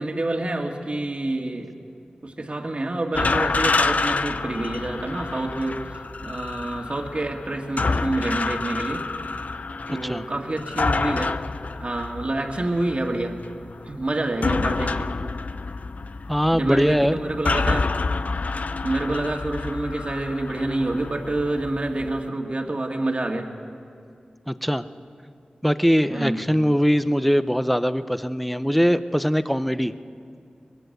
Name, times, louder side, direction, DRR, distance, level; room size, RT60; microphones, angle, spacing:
voice 1, 0.0-1.7 2.2-9.1 9.9-11.4 11.8-13.4 13.8-15.1 16.5-17.9 18.8-23.5 26.1-26.4, right 2 dB, 45° right, 2 dB, 2.2 m, -27 dB
sound 1, 3.1-22.2, left 3 dB, 65° left, 0.6 m, -28 dB
voice 2, 16.3-17.2 24.5-24.8 25.6-29.9, equal, ahead, 12 dB, 0.8 m, -21 dB
23.0 x 20.5 x 8.0 m, 2.4 s
wide cardioid pair, 55°, 3 cm